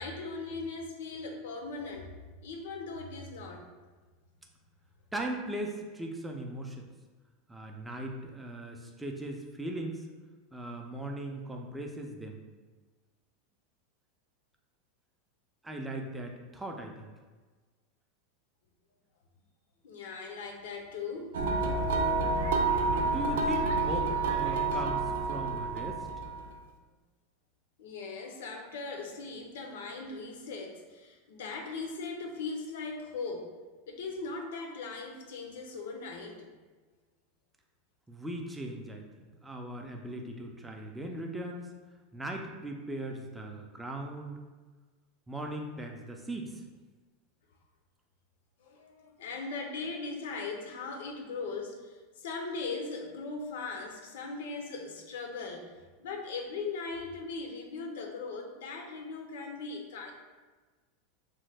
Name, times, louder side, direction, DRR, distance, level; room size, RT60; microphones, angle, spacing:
voice 1, 0.0-2.1 2.4-3.7 19.8-21.3 27.8-33.5 33.9-36.6 48.6-60.1, left 4 dB, 85° left, 3 dB, 0.5 m, -39 dB
voice 2, 5.1-6.9 7.5-10.0 10.5-12.4 15.6-17.1 23.1-26.1 38.1-41.7 42.1-44.4 45.3-46.6, right 1 dB, 5° right, 1 dB, 0.3 m, -39 dB
sound 1, 21.3-26.5, right 3 dB, 85° right, 0.3 m, -29 dB
3.0 x 2.1 x 3.3 m, 1.3 s
supercardioid pair, 140°, 0 cm